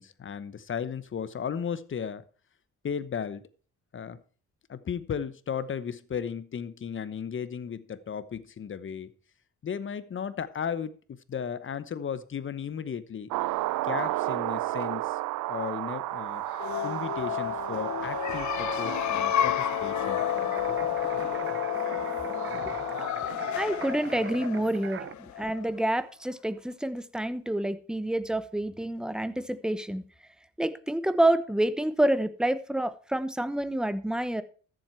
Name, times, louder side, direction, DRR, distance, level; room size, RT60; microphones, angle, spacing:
voice 1, 0.0-2.2 2.8-3.4 3.9-4.2 4.7-9.1 9.6-13.3 13.8-15.2 15.5-16.4 16.8-20.2, left 7 dB, 40° left, 15 dB, 1.0 m, -35 dB
sound 1, 13.3-23.1, right 17 dB, 85° right, 0.5 m, -33 dB
sound 2, 16.4-25.9, left 12 dB, 70° left, 1.0 m, -31 dB
sound 3, 20.2-25.1, right 7 dB, 40° right, 0.8 m, -41 dB
voice 2, 23.2-30.0 30.6-34.4, right 1 dB, ahead, 13 dB, 0.9 m, -28 dB
13.5 x 7.6 x 4.5 m, 0.40 s
cardioid pair, 90°, 30 cm